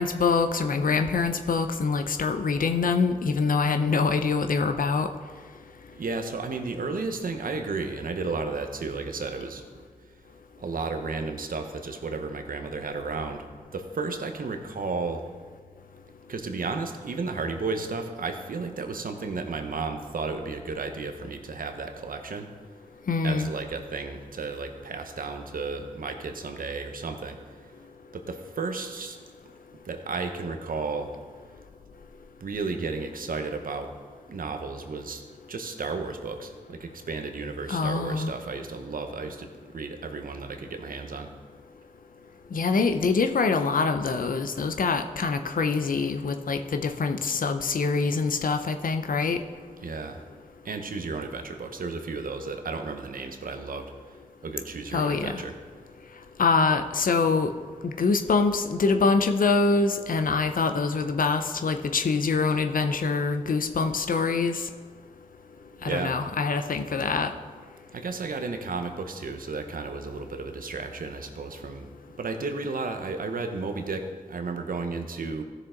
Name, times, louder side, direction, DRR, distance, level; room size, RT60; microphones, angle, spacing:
voice 1, 0.0-5.1 23.1-23.5 37.7-38.3 42.5-49.4 54.9-55.4 56.4-57.5 57.8-64.6 65.8-67.3, left 4 dB, 70° left, 7 dB, 0.7 m, -25 dB
voice 2, 5.9-9.6 10.6-13.5 13.7-15.3 16.3-22.5 23.2-27.4 27.6-27.7 28.1-29.2 29.8-31.1 32.4-33.9 34.3-35.2 35.5-41.3 49.8-50.2 50.6-53.9 54.4-55.5 65.8-66.2 67.9-71.9 72.2-75.4, right 4 dB, 75° right, 6 dB, 1.0 m, -33 dB
14.5 x 6.4 x 3.8 m, 1.5 s
cardioid pair, 45°, 15 cm